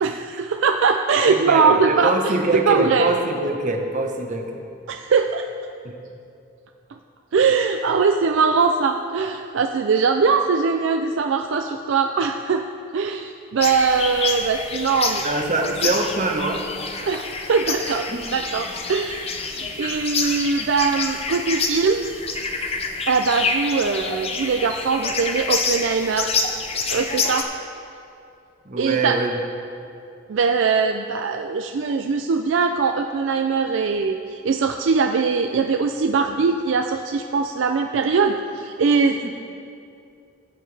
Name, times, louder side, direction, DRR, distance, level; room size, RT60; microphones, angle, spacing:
voice 1, 0.0-3.1 4.9-5.5 7.3-12.7 12.9-15.2 15.6-15.7 17.1-18.1 18.3-19.5 19.8-22.1 23.1-26.3 26.9-27.5 28.8-29.2 30.3-39.2, right 5 dB, 60° right, 5 dB, 0.4 m, -21 dB
voice 2, 1.3-4.6 5.8-5.9 15.2-16.7 17.8-18.2 19.6-19.7 28.6-29.4 39.2-39.3, right 2 dB, 35° right, 3 dB, 0.9 m, -24 dB
sound 1, 13.6-27.4, left 4 dB, 30° left, 0.6 m, -27 dB
17.0 x 7.5 x 3.3 m, 2.6 s
head